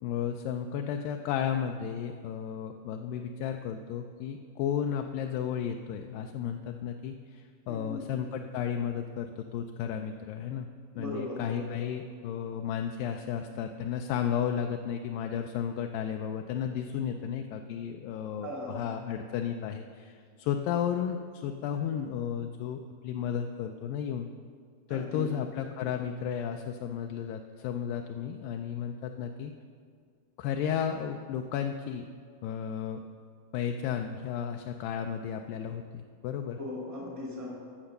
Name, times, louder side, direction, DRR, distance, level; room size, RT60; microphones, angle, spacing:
voice 1, 0.0-10.7 11.0-24.3 24.9-29.5 30.4-32.1 32.4-33.0 33.5-36.6, left 8 dB, 85° left, 5 dB, 2.2 m, -33 dB
voice 2, 7.7-8.0 10.9-11.8 18.4-18.8 24.9-25.2 36.6-37.6, left 1 dB, 5° right, -3 dB, 1.4 m, -38 dB
14.5 x 6.1 x 6.6 m, 2.1 s
omnidirectional pair, 4.0 m